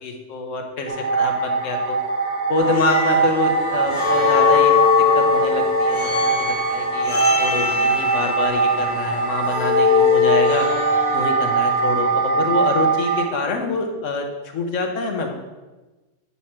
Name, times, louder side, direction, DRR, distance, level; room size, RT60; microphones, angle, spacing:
voice 1, 0.0-2.0 2.5-10.7 11.1-14.3 14.5-15.3, left 3 dB, 85° left, 3 dB, 1.3 m, -26 dB
sound 1, 0.9-13.3, right 5 dB, 45° right, 0.6 m, -22 dB
sound 2, 2.6-11.8, left 6 dB, 30° left, 0.7 m, -21 dB
8.4 x 3.2 x 5.9 m, 1.2 s
omnidirectional pair, 1.3 m